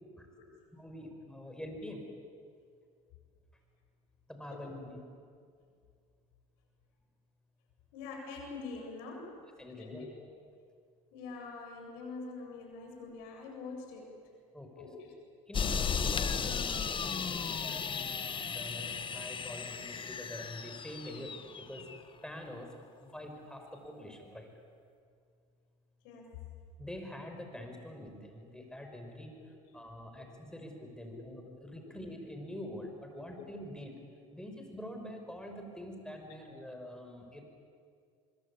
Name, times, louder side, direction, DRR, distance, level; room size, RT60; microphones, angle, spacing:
voice 1, 0.7-2.0 4.3-5.0 9.6-10.0 14.5-14.9 15.5-16.4 16.8-17.8 18.3-21.3 21.6-21.8 22.2-22.7 23.0-24.5 26.8-34.0 34.3-37.4, left 1 dB, 5° left, 4 dB, 5.7 m, -45 dB
voice 2, 7.9-9.4 9.8-10.2 11.1-14.2 14.8-15.1 15.7-15.8 16.3-17.6 17.8-18.1 18.5-18.9 19.4-20.0 21.1-21.2 26.0-26.4 29.6-29.8 30.2-30.3 30.5-30.6 31.0-31.5 33.2-33.4, left 4 dB, 70° left, 1 dB, 7.5 m, -46 dB
sound 1, 15.5-22.0, left 6 dB, 30° left, 1.5 m, -35 dB
24.5 x 23.0 x 8.7 m, 2.2 s
hypercardioid pair, 85°, 18 cm